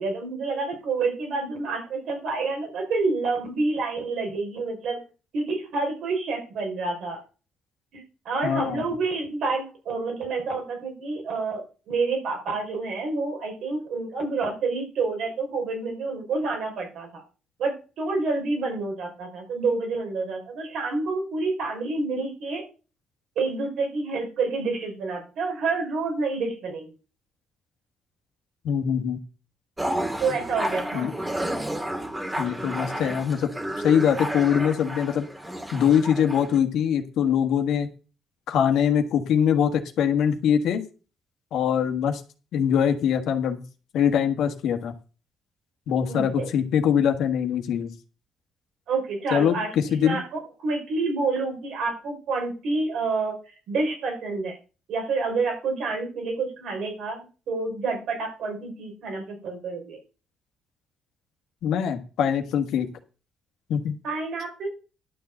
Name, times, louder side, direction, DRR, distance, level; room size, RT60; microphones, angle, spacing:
voice 1, 0.0-5.0 5.3-7.2 7.9-17.2 17.6-22.6 23.4-26.9 30.2-31.1 46.1-46.5 48.9-49.7 50.0-53.4 53.7-54.6 54.9-60.0 64.0-64.7, right 3 dB, 75° right, 2 dB, 4.7 m, -28 dB
voice 2, 8.4-8.8 28.6-29.2 30.9-31.1 32.4-33.5 33.8-35.3 35.7-37.9 38.5-40.8 41.5-42.2 42.5-43.6 43.9-44.9 45.9-47.9 49.3-50.2 61.6-62.9 63.7-64.0, left 8 dB, 80° left, 6 dB, 1.6 m, -23 dB
sound 1, 29.8-36.6, right 1 dB, 15° right, 1.9 m, -31 dB
11.5 x 4.8 x 7.8 m, 0.34 s
cardioid pair, 90°, 0 cm